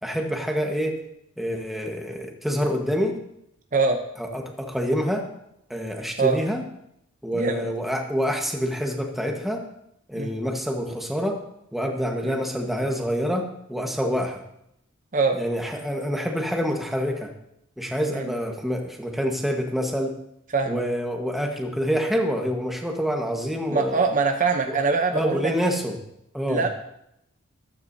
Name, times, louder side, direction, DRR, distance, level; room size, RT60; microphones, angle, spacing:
voice 1, 0.0-1.0 1.4-3.1 4.2-5.3 5.7-6.6 7.2-9.6 10.1-11.4 11.7-14.4 15.3-17.3 17.8-20.2 20.7-24.0 24.7-24.8 25.1-26.0 26.3-26.6, equal, ahead, 2 dB, 1.3 m, -27 dB
voice 2, 7.3-7.7 10.1-10.3 12.2-12.4 15.1-15.4 18.1-18.3 20.5-20.8 23.7-25.5 26.5-26.7, right 4 dB, 40° right, 5 dB, 0.7 m, -23 dB
14.5 x 13.0 x 2.7 m, 0.78 s
head